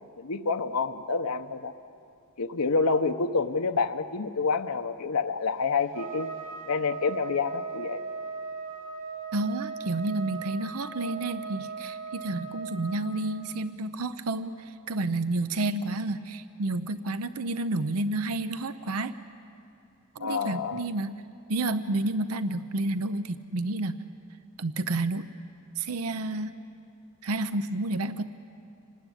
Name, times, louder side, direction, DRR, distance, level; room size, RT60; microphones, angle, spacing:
voice 1, 0.2-1.7 2.4-6.3 6.7-8.0 20.2-20.9, left 4 dB, 90° left, 6 dB, 0.9 m, -28 dB
Trumpet, 5.9-13.3, right 5 dB, 60° right, 3.9 m, -38 dB
voice 2, 9.3-14.5 14.9-19.1 20.2-21.1 21.5-24.0 24.6-25.3 25.8-26.5 27.2-28.2, right 2 dB, 80° right, 12 dB, 0.7 m, -30 dB
26.0 x 19.5 x 10.0 m, 2.6 s
head